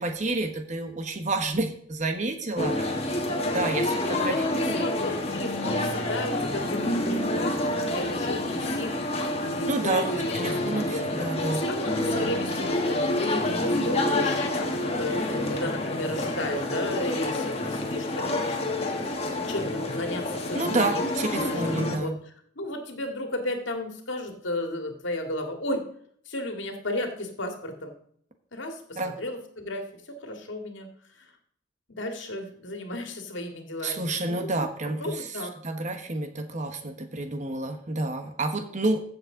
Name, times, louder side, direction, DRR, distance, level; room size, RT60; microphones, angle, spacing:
voice 1, 0.0-3.2 3.5-4.9 9.7-11.6 20.5-22.2 29.0-29.1 33.8-35.3 35.6-39.0, right 2 dB, 40° right, 6 dB, 1.2 m, -29 dB
voice 2, 2.5-2.9 3.1-3.6 4.3-21.0 21.5-22.2 22.6-25.8 26.3-27.9 28.5-30.9 31.2-31.3 31.9-34.6 35.0-35.5, left 1 dB, 75° left, 4 dB, 2.0 m, -34 dB
sound 1, 2.6-22.0, left 1 dB, 30° left, 1.5 m, -28 dB
15.5 x 7.2 x 3.8 m, 0.65 s
head